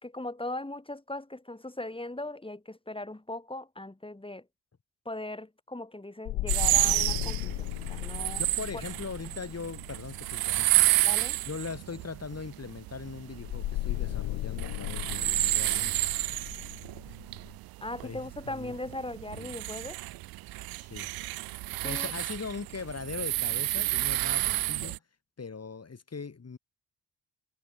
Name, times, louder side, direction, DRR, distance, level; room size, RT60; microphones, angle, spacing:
voice 1, 0.0-4.5 5.0-8.4 11.0-11.4 17.8-20.0 21.8-22.1 24.8-24.9, left 2 dB, 10° left, 4.5 m, -39 dB
sound 1, 6.3-10.7 13.4-17.5, left 17 dB, 60° left, 1.8 m, -36 dB
sound 2, 6.5-25.0, right 19 dB, 50° right, 0.7 m, -30 dB
voice 2, 8.5-10.9 11.4-16.0 18.0-18.7 19.4-19.6 20.8-21.1 21.8-25.0 25.4-26.6, left 5 dB, 30° left, 5.2 m, -40 dB
figure-of-eight pair, 40°, 48 cm